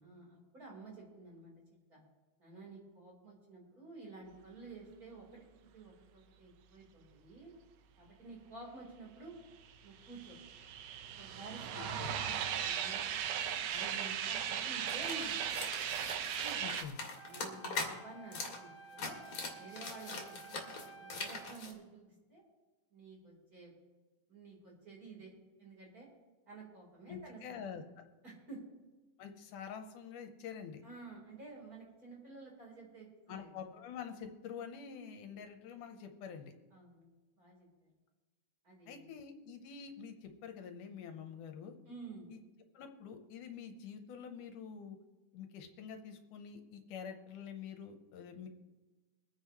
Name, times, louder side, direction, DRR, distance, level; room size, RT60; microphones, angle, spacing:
voice 1, 0.0-1.5 1.9-2.0 2.4-5.5 5.7-7.5 8.0-9.3 9.8-10.4 11.2-13.0 13.7-15.6 16.4-16.6 17.2-19.2 19.5-22.4 22.9-23.7 24.3-25.3 25.6-26.1 26.5-27.6 28.2-28.6 30.8-33.5 36.7-37.1 37.4-37.9 38.6-39.1 41.8-42.3, right 3 dB, 25° right, -3 dB, 4.4 m, -51 dB
sound 1, 9.7-16.8, right 9 dB, 70° right, 1.7 m, -37 dB
voice 2, 11.8-12.1 16.6-17.0 27.1-27.8 29.2-30.8 33.3-36.5 38.9-41.8 42.3-42.4 42.7-45.0 45.3-48.5, left 7 dB, 80° left, 6 dB, 2.5 m, -47 dB
sound 2, 14.9-17.9 18.3-18.6 18.8-21.7, left 3 dB, 45° left, 2.6 m, -42 dB
Wind instrument woodwind instrument, 17.1-21.6, right 5 dB, 45° right, 2.6 m, -54 dB
24.0 x 9.6 x 3.1 m, 1.2 s
omnidirectional pair, 3.7 m